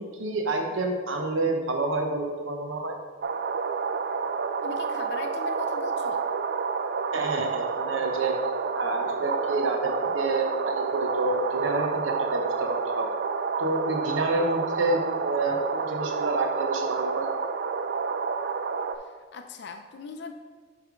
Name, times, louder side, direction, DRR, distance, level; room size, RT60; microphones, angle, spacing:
voice 1, 0.2-3.0 7.1-8.3 8.7-13.1 13.6-17.3, right 2 dB, 85° right, 3 dB, 0.8 m, -28 dB
sound 1, 3.2-19.0, right 5 dB, 55° right, 0.4 m, -29 dB
voice 2, 4.6-6.2 19.0-20.3, left 4 dB, 60° left, 6 dB, 0.4 m, -39 dB
8.1 x 3.4 x 4.9 m, 1.5 s
head